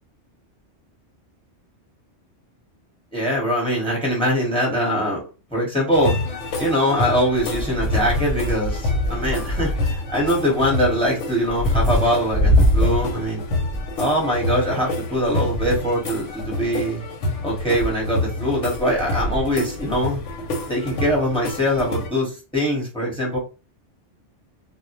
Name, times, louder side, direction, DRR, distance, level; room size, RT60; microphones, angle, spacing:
voice 1, 3.1-5.2 5.5-6.2 6.6-13.4 14.0-17.0 17.4-20.2 20.7-23.4, equal, 5° left, -3 dB, 0.9 m, -22 dB
sound 1, 5.9-22.1, left 1 dB, 90° left, 0.9 m, -25 dB
2.1 x 2.1 x 2.8 m, 0.31 s
omnidirectional pair, 1.2 m